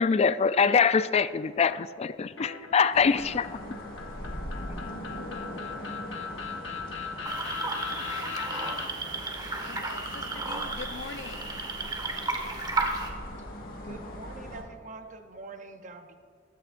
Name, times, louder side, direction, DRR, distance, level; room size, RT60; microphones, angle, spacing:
voice 1, 0.0-3.5, left 5 dB, 35° left, 0.3 m, -24 dB
sound 1, 2.4-8.9, left 5 dB, 75° left, 1.3 m, -39 dB
sound 2, 2.9-14.6, left 1 dB, 50° left, 1.6 m, -41 dB
sound 3, 7.2-13.1, right 3 dB, 25° right, 1.2 m, -33 dB
voice 2, 7.9-8.9 9.6-11.5, left 5 dB, 90° left, 0.6 m, -44 dB
voice 3, 13.8-16.2, right 3 dB, 40° right, 0.7 m, -44 dB
15.5 x 13.0 x 2.5 m
head